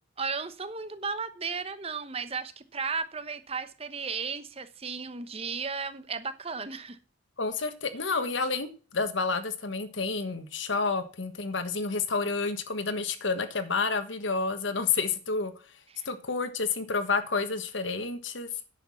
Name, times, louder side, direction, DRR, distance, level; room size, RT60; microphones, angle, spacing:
voice 1, 0.2-7.0 15.9-16.1, right 5 dB, 30° right, 1.0 m, -35 dB
voice 2, 7.4-15.5 16.0-18.5, left 4 dB, 75° left, 1.4 m, -29 dB
10.0 x 7.0 x 5.6 m
head